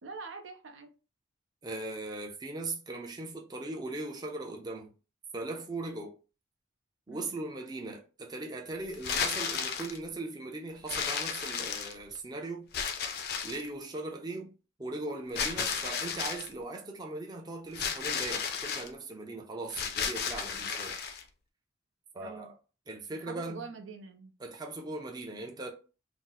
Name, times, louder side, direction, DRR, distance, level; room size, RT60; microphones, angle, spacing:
voice 1, 0.0-0.9 7.1-7.3 22.2-22.5 23.3-24.3, right 4 dB, 85° right, 0.6 m, -44 dB
voice 2, 1.6-4.9 5.3-6.2 7.1-12.7 13.4-14.5 14.8-21.0 22.1-22.5 22.9-23.6 24.4-25.7, right 2 dB, 20° right, 0.4 m, -39 dB
sound 1, 8.9-10.0 10.9-12.2 12.7-13.7 15.3-16.5 17.7-18.9 19.7-21.2, left 6 dB, 55° left, 0.4 m, -33 dB
2.6 x 2.0 x 3.8 m
head